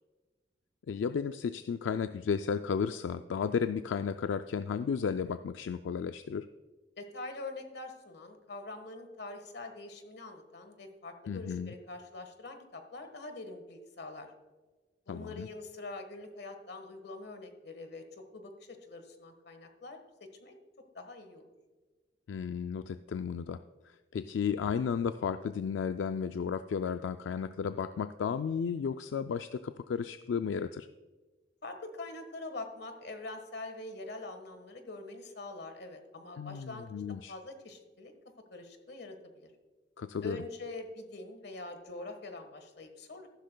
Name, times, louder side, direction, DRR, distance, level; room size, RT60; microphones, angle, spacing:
voice 1, 0.9-6.5 11.3-11.7 15.1-15.5 22.3-23.6 23.9-30.9 36.4-37.3 40.0-40.4, left 6 dB, 85° left, 10 dB, 0.3 m, -33 dB
voice 2, 7.0-14.3 15.1-20.6 20.9-21.5 31.6-36.9 37.3-38.1 38.5-39.5 40.2-43.3, left 2 dB, 65° left, 7 dB, 1.4 m, -44 dB
14.0 x 11.5 x 2.2 m, 1.3 s
head